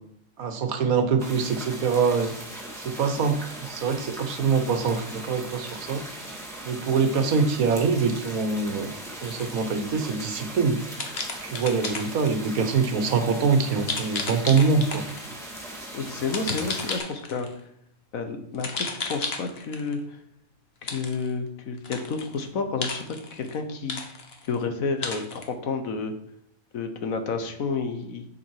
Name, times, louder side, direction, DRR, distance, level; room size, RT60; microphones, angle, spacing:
voice 1, 0.4-2.3 2.8-6.0 6.6-8.9 9.2-10.8 11.4-15.0, right 5 dB, 90° right, 7 dB, 1.5 m, -24 dB
sound 1, 1.2-17.0, right 1 dB, ahead, 1.7 m, -39 dB
sound 2, 9.2-9.7 10.9-12.4 13.9-15.3 16.3-17.5 18.5-19.9 20.9-21.3 21.8-22.4 22.8-23.6 23.9-24.6 25.0-25.5, left 4 dB, 50° left, 1.3 m, -33 dB
voice 2, 15.9-17.5 18.1-20.2 20.8-23.0 23.3-24.1 24.4-26.1 26.7-28.3, left 4 dB, 75° left, 6 dB, 1.5 m, -30 dB
7.3 x 7.1 x 4.8 m, 0.72 s
omnidirectional pair, 1.4 m